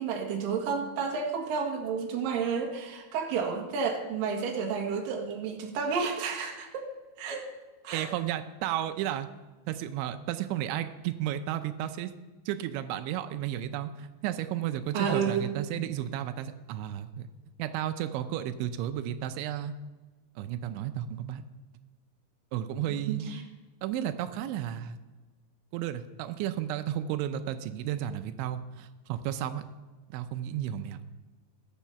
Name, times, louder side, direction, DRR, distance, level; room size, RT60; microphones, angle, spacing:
voice 1, 0.0-6.9 7.2-7.5 7.8-8.1 14.9-15.5 22.9-23.4, right 5 dB, 60° right, 1 dB, 3.1 m, -31 dB
voice 2, 7.9-9.3 9.7-12.1 12.5-17.3 17.6-19.7 20.4-21.4 22.5-23.3 23.8-25.0 25.7-29.7 30.1-31.0, right 11 dB, 90° right, 9 dB, 3.1 m, -33 dB
21.0 x 7.3 x 5.7 m, 1.3 s
omnidirectional pair, 5.2 m